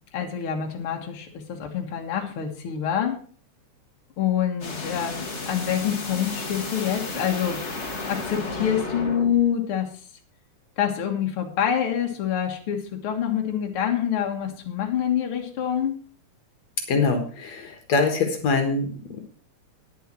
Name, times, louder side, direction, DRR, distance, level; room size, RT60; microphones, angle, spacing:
voice 1, 0.1-3.2 4.2-7.6 8.1-9.9 10.8-16.0, left 9 dB, 50° left, 2 dB, 2.4 m, -26 dB
sound 1, 4.6-9.4, left 3 dB, 30° left, 1.5 m, -33 dB
voice 2, 16.9-19.2, left 4 dB, 65° left, 5 dB, 2.7 m, -24 dB
10.5 x 10.0 x 4.5 m, 0.42 s
omnidirectional pair, 3.3 m